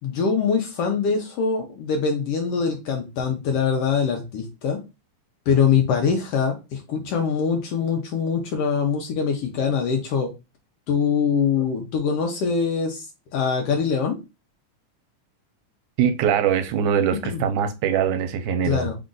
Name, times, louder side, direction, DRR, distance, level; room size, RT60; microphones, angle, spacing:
voice 1, 0.0-4.8 5.5-10.3 10.9-13.1 13.3-14.2 17.3-17.4 18.6-19.0, left 6 dB, 80° left, 1.3 m, -23 dB
voice 2, 16.0-18.9, right 8 dB, 80° right, 2.1 m, -22 dB
4.8 x 2.5 x 3.7 m
omnidirectional pair, 3.7 m